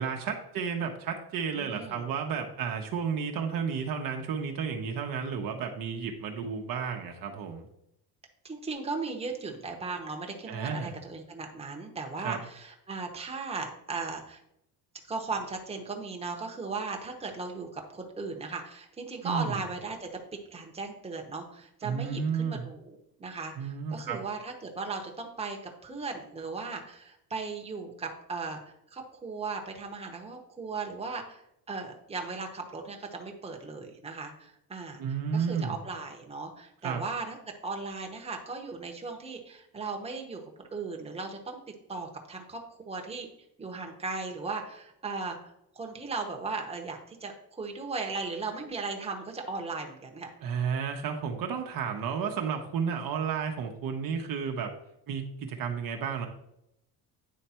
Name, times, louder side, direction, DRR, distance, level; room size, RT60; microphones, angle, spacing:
voice 1, 0.0-7.7 10.5-10.9 12.2-12.4 19.2-19.6 21.8-22.6 23.6-24.2 35.0-35.7 36.8-37.0 50.4-54.7 55.1-56.3, right 6 dB, 60° right, 3 dB, 1.0 m, -32 dB
voice 2, 1.5-2.0 8.4-14.4 15.1-20.1 20.5-31.4 31.7-35.0 35.3-37.4 37.6-41.6 41.9-43.3 43.6-50.3, right 4 dB, 15° right, 2 dB, 1.1 m, -37 dB
9.5 x 3.3 x 4.4 m, 0.79 s
cardioid pair, 115°, 38 cm